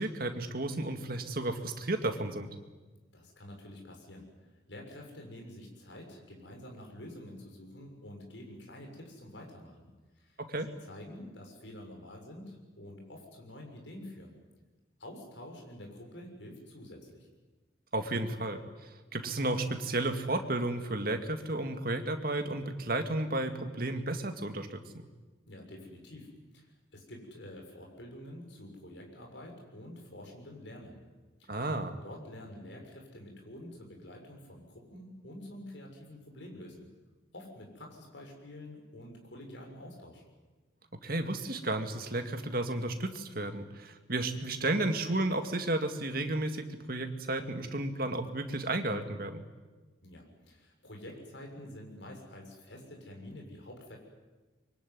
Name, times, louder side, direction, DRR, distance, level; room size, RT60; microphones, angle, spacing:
voice 1, 0.0-2.5 10.4-10.7 17.9-18.6 19.1-24.8 31.5-32.0 41.0-49.4, right 2 dB, 50° right, 6 dB, 2.2 m, -33 dB
voice 2, 3.1-9.9 10.1-10.4 10.7-14.4 15.0-17.3 25.5-31.0 31.4-31.6 32.0-36.9 37.3-40.2 50.0-54.0, left 1 dB, 70° left, 1 dB, 6.7 m, -48 dB
24.0 x 23.5 x 9.6 m, 1.2 s
head